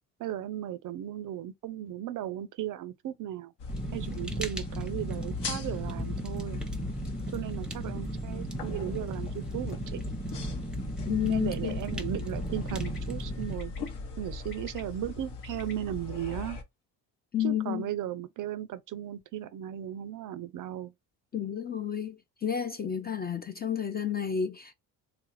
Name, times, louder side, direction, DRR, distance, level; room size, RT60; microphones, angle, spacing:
voice 1, 0.2-3.5 3.9-6.6 7.3-10.0 11.1-13.7 14.2-16.6 17.4-20.9, right 11 dB, 45° right, 0.4 m, -36 dB
sound 1, 3.6-16.6, left 4 dB, 65° left, 1.0 m, -38 dB
Fire, 3.7-13.6, right 2 dB, ahead, 0.7 m, -36 dB
voice 2, 11.1-11.8 17.3-17.9 21.3-24.7, left 9 dB, 25° left, 0.3 m, -31 dB
Bird, 11.7-12.0 12.7-13.0 13.6-13.9 14.4-15.7, left 4 dB, 85° left, 1.3 m, -50 dB
3.4 x 2.3 x 3.1 m
supercardioid pair, 70°, 45 cm